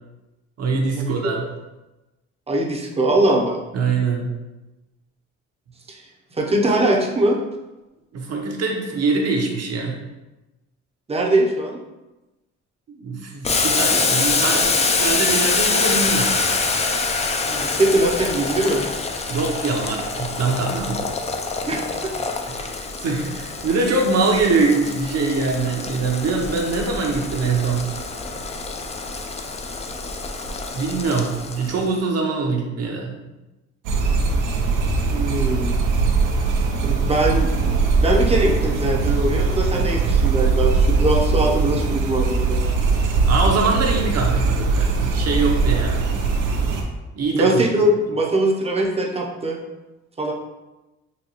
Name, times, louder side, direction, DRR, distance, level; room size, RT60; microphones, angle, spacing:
voice 1, 0.6-1.4 3.7-4.3 8.1-10.0 13.0-16.3 19.3-21.0 22.5-27.9 30.7-33.1 43.3-46.1 47.1-47.6, right 3 dB, 55° right, 1 dB, 0.8 m, -23 dB
voice 2, 2.5-3.6 5.9-6.0 6.3-7.4 11.1-11.8 17.5-18.8 21.7-22.1 35.1-35.7 36.8-37.7 38.0-42.6 47.3-49.6 50.2-50.3, right 1 dB, 20° right, 0 dB, 0.6 m, -21 dB
Boiling, 13.4-31.9, left 4 dB, 25° left, 0.3 m, -25 dB
sound 1, 33.8-46.8, right 4 dB, 90° right, 0.6 m, -20 dB
4.0 x 2.2 x 2.9 m, 1.0 s
cardioid pair, 90°, 30 cm